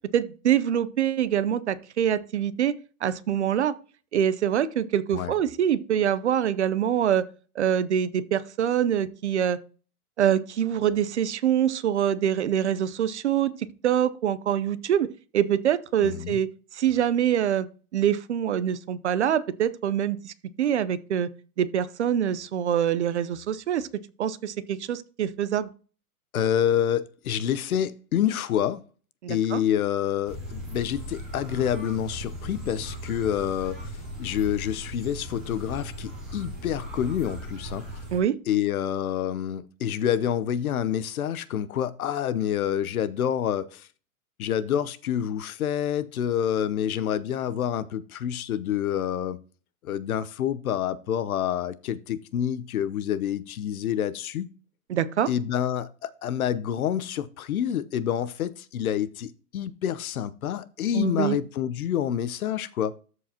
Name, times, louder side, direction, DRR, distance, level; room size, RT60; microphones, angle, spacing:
voice 1, 0.1-2.7 3.0-3.7 4.1-7.3 7.6-9.6 10.2-13.5 13.8-16.5 16.7-17.7 17.9-21.3 21.6-23.9 24.2-25.7 29.2-29.6 38.1-38.4 54.9-55.3 61.0-61.4, right 9 dB, 50° right, 0.5 m, -25 dB
voice 2, 16.0-16.4 26.3-28.8 29.3-33.8 34.2-37.9 38.5-43.9 44.4-49.4 49.8-54.5 55.3-63.0, left 10 dB, 65° left, 0.8 m, -27 dB
sound 1, 30.2-38.2, right 1 dB, ahead, 0.6 m, -38 dB
13.5 x 4.7 x 2.8 m
hypercardioid pair, 175°, 46 cm